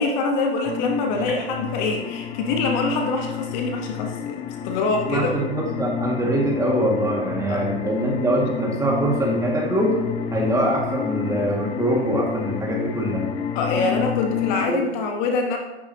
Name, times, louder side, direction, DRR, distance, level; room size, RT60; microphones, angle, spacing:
voice 1, 0.0-5.3 7.5-7.6 13.5-15.6, left 3 dB, 45° left, 3 dB, 1.2 m, -25 dB
sound 1, 0.7-14.7, left 8 dB, 15° left, 0.4 m, -30 dB
voice 2, 5.0-9.9 10.3-13.2 14.7-14.8, right 1 dB, 10° right, -2 dB, 2.0 m, -23 dB
9.9 x 8.2 x 2.9 m, 1.1 s
hypercardioid pair, 115°, 32 cm